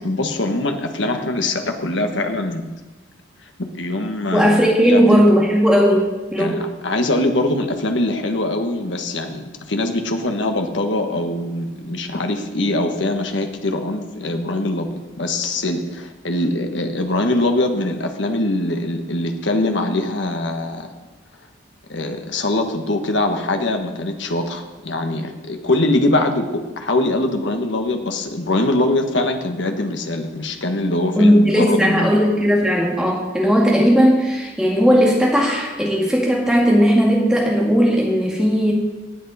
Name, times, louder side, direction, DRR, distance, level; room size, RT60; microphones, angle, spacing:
voice 1, 0.0-2.7 3.7-5.2 6.4-20.9 21.9-32.2, left 2 dB, 75° left, 5 dB, 1.4 m, -22 dB
voice 2, 4.3-6.1 6.3-6.6 31.2-38.7, equal, 5° right, -3 dB, 2.0 m, -16 dB
18.0 x 8.2 x 4.2 m, 1.1 s
head